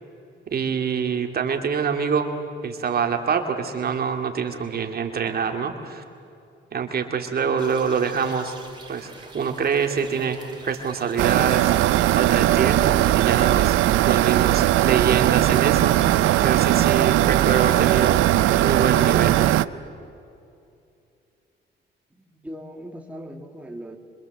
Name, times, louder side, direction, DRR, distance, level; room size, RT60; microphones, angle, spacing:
voice 1, 0.5-2.3 2.6-6.0 6.7-8.5 8.9-10.4 10.6-11.7 12.1-18.2 18.5-19.6, right 6 dB, 50° right, 4 dB, 2.4 m, -25 dB
sound 1, 7.6-18.2, right 3 dB, 20° right, 4.2 m, -46 dB
sound 2, 11.2-19.7, right 14 dB, 85° right, 0.6 m, -19 dB
voice 2, 22.1-24.0, equal, 5° right, 2 dB, 2.6 m, -39 dB
26.0 x 24.5 x 7.9 m, 2.6 s
cardioid pair, 90°, 20 cm